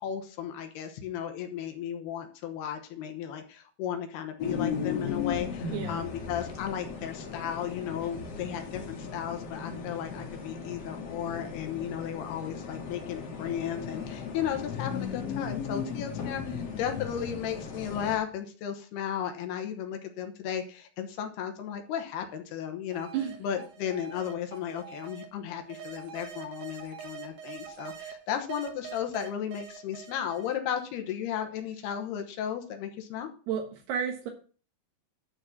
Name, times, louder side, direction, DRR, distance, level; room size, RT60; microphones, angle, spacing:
voice 1, 0.0-23.1 23.4-33.3, left 9 dB, 80° left, 5 dB, 3.1 m, -35 dB
sound 1, 4.4-18.2, left 6 dB, 50° left, 2.3 m, -36 dB
voice 2, 5.7-6.1 23.1-23.4 33.5-34.3, right 8 dB, 80° right, 1 dB, 3.4 m, -32 dB
sound 2, 22.9-25.2 25.7-28.1 28.5-30.9, right 8 dB, 60° right, 2.5 m, -44 dB
11.5 x 4.2 x 7.2 m, 0.38 s
omnidirectional pair, 4.6 m